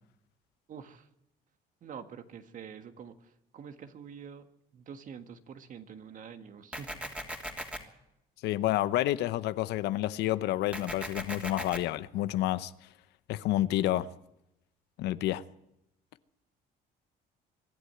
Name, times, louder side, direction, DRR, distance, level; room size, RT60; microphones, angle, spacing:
voice 1, 0.7-1.1 1.8-4.5 4.7-7.0, right 7 dB, 50° right, 1.7 m, -46 dB
sound 1, 6.7-7.8 10.7-11.8, equal, 5° right, 3.1 m, -38 dB
voice 2, 8.4-12.7 13.3-14.1 15.0-15.4, left 14 dB, 85° left, 0.8 m, -29 dB
24.5 x 11.5 x 9.5 m
cardioid pair, 110°, 17 cm